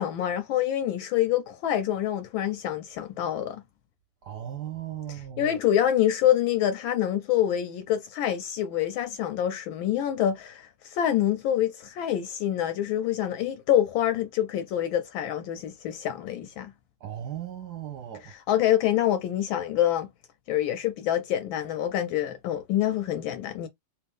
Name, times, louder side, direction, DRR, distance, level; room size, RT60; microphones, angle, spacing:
voice 1, 0.0-3.6 5.1-16.7 18.2-20.1 20.5-23.7, left 11 dB, 75° left, 1.2 m, -26 dB
voice 2, 4.2-5.5 17.0-18.3, right 11 dB, 55° right, 1.3 m, -37 dB
3.4 x 2.9 x 3.4 m
omnidirectional pair, 2.4 m